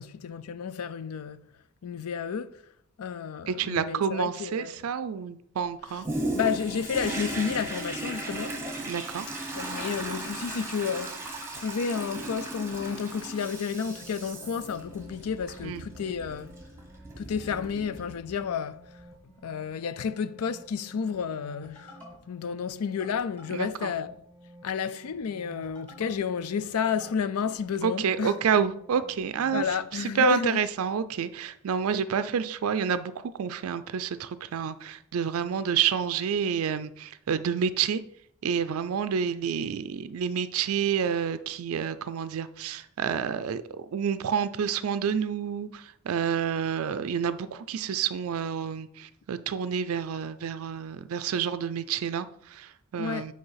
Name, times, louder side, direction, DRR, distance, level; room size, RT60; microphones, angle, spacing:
voice 1, 0.0-1.5 1.8-2.6 3.0-4.8 6.3-8.6 9.5-11.3 11.5-16.5 17.2-18.9 19.4-22.0 22.3-24.2 24.6-28.4 29.5-30.6 53.0-53.3, left 6 dB, 90° left, 0.4 m, -31 dB
voice 2, 3.5-6.1 8.9-9.3 15.6-15.8 23.5-23.9 27.8-38.0 38.4-53.3, right 7 dB, 75° right, 0.4 m, -29 dB
Toilet flush, 6.0-18.5 19.0-19.1, right 2 dB, 10° right, 1.0 m, -37 dB
sound 1, 13.6-29.7, right 1 dB, 5° left, 1.9 m, -52 dB
7.9 x 3.3 x 5.7 m
head